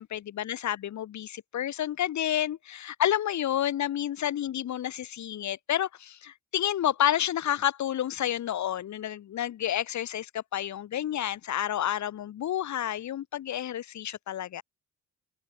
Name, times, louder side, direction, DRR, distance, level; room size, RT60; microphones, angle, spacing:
voice 1, 0.0-14.6, left 11 dB, 70° left, 3.0 m, -30 dB
open air
cardioid pair, 90°, 30 cm